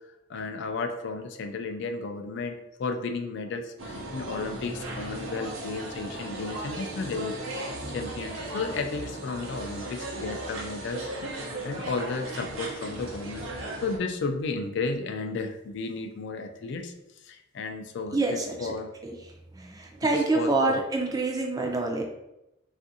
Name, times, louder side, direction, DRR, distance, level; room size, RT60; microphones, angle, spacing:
voice 1, 0.3-11.1 11.4-16.9 17.2-18.9 20.0-20.8, left 3 dB, 60° left, 6 dB, 0.3 m, -33 dB
sound 1, 3.8-14.0, right 1 dB, 80° right, 0.7 m, -37 dB
voice 2, 18.1-18.7 19.0-19.1 19.6-22.0, right 2 dB, 20° right, 1 dB, 0.4 m, -26 dB
3.4 x 2.5 x 2.6 m, 0.89 s
head